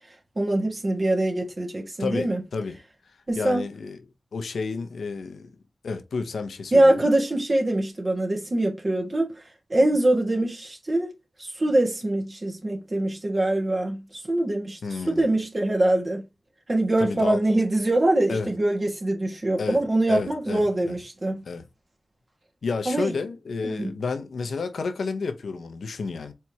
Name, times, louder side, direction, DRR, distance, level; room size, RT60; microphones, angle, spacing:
voice 1, 0.3-2.4 3.3-3.6 6.7-9.3 9.7-11.1 11.4-14.8 15.1-16.2 16.7-21.4 22.8-23.1 23.6-23.9, right 1 dB, 45° right, 1.6 m, -23 dB
voice 2, 2.0-2.8 3.4-4.0 4.3-5.5 5.8-7.1 14.8-15.3 17.0-17.4 18.3-18.5 19.6-19.8 20.1-20.9 21.4-21.6 22.6-26.3, left 4 dB, 90° left, 0.7 m, -31 dB
4.5 x 3.4 x 2.8 m
cardioid pair, 45°, 0 cm